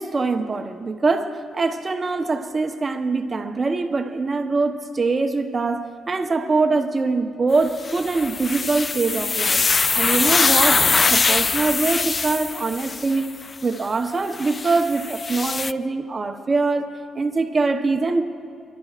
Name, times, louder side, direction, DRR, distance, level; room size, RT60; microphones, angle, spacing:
voice 1, 0.0-9.6 9.9-13.3 13.6-18.2, right 3 dB, 35° right, 5 dB, 0.9 m, -23 dB
sound 1, 7.8-13.2 14.3-15.7, left 4 dB, 35° left, 0.3 m, -22 dB
29.0 x 12.0 x 2.5 m, 2.3 s
cardioid pair, 75°, 0 cm